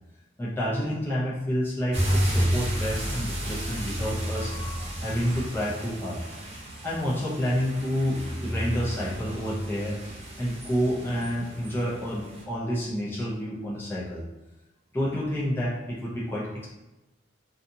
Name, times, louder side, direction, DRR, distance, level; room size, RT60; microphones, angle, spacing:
voice 1, 0.4-6.2 6.8-10.0 10.4-14.2 14.9-16.7, equal, 10° left, -7 dB, 0.6 m, -29 dB
sound 1, 1.9-12.4, equal, 35° right, 0.8 m, -31 dB
2.7 x 2.4 x 2.7 m, 1.0 s
head